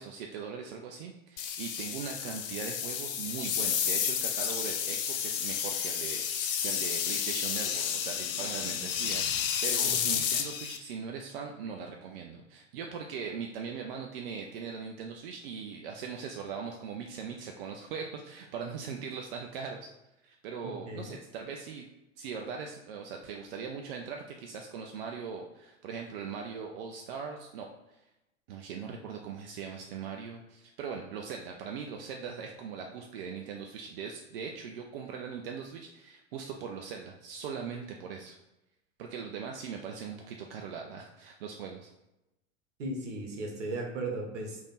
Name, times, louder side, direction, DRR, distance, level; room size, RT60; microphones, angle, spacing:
voice 1, 0.0-19.9 20.2-21.8 22.2-28.0 28.5-38.4 39.0-41.9, right 6 dB, 45° right, 2 dB, 0.4 m, -40 dB
sound 1, 1.4-10.8, left 8 dB, 45° left, 0.5 m, -31 dB
voice 2, 9.8-10.2 20.6-21.1 42.8-44.6, right 2 dB, 60° right, 1 dB, 1.0 m, -37 dB
3.4 x 2.6 x 3.9 m, 0.94 s
figure-of-eight pair, 90°, 40 cm